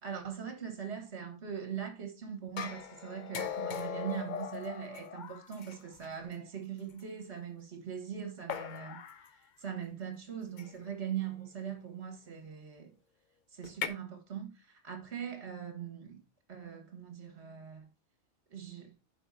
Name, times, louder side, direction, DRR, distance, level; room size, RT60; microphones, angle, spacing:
voice 1, 0.0-9.3 9.6-13.0 13.5-16.2 16.5-17.9 18.5-18.9, right 8 dB, 60° right, 1.8 m, -41 dB
sound 1, 2.6-6.1 7.0-7.1 8.5-9.3 10.6-10.9 13.6-13.9, left 8 dB, 50° left, 0.6 m, -39 dB
10.0 x 4.8 x 2.7 m
omnidirectional pair, 1.3 m